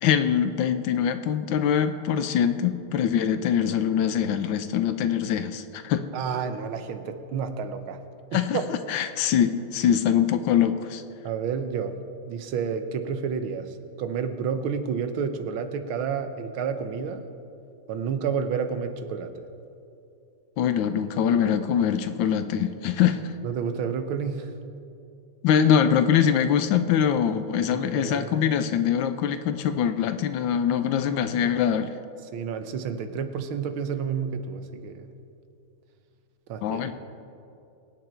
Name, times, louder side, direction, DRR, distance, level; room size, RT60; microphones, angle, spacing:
voice 1, 0.0-6.0 8.3-8.6 8.9-11.0 20.6-23.2 25.4-31.9 36.6-36.9, left 8 dB, 75° left, 10 dB, 1.3 m, -23 dB
voice 2, 6.1-8.0 8.3-8.7 11.2-12.0 12.3-17.3 17.9-19.4 23.4-24.5 27.8-28.5 32.3-35.1 36.5-36.9, right 6 dB, 80° right, 9 dB, 1.7 m, -30 dB
22.5 x 9.0 x 4.5 m, 2.7 s
omnidirectional pair, 2.2 m